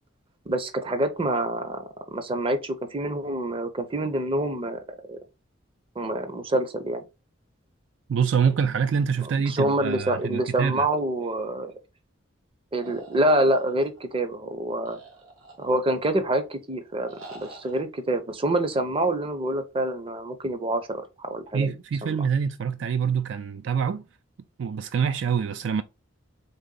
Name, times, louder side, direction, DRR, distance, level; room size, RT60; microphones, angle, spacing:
voice 1, 0.5-5.2 6.0-7.0 9.2-11.7 12.7-15.0 15.6-21.7 22.0-22.3, right 1 dB, 25° right, 0.6 m, -27 dB
voice 2, 8.1-10.9 21.5-24.0 24.6-25.8, right 6 dB, 65° right, 0.3 m, -25 dB
sound 1, 12.8-14.2 14.8-16.0 17.1-17.8, right 3 dB, 90° right, 1.8 m, -46 dB
4.0 x 3.4 x 3.8 m
head